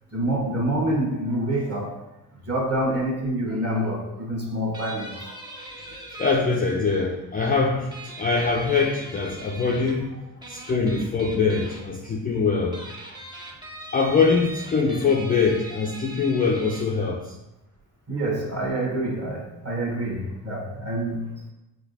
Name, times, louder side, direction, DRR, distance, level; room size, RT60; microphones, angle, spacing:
voice 1, 0.1-2.1 2.5-5.5 10.4-10.6 18.1-21.3, right 1 dB, 30° right, 0 dB, 1.2 m, -27 dB
sound 1, 4.7-6.3 7.9-10.0 10.4-11.8 12.6-16.9, right 2 dB, 10° right, 0.8 m, -41 dB
voice 2, 6.2-10.2 10.5-12.8 13.9-17.4, left 4 dB, 20° left, -1 dB, 0.4 m, -23 dB
5.1 x 3.1 x 2.6 m, 0.93 s
hypercardioid pair, 50°, 48 cm